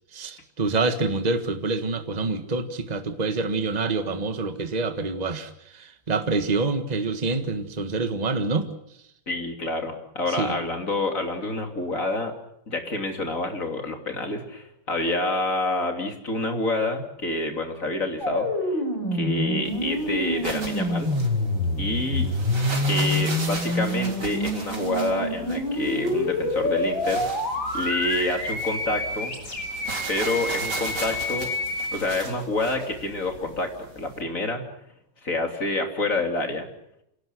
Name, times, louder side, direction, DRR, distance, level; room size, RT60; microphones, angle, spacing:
voice 1, 0.1-8.7 10.4-10.6, right 3 dB, 25° right, 8 dB, 1.6 m, -26 dB
voice 2, 9.3-12.3 12.7-18.8 19.1-21.1 21.8-22.3 22.9-27.2 27.7-29.3 30.1-31.5 31.9-34.6 35.2-36.7, left 2 dB, 45° left, 4 dB, 3.4 m, -28 dB
sound 1, 18.2-32.0, left 1 dB, 90° left, 6.6 m, -27 dB
sound 2, 19.6-34.2, right 2 dB, 60° right, 4.3 m, -38 dB
27.0 x 18.0 x 7.9 m, 0.78 s
omnidirectional pair, 2.0 m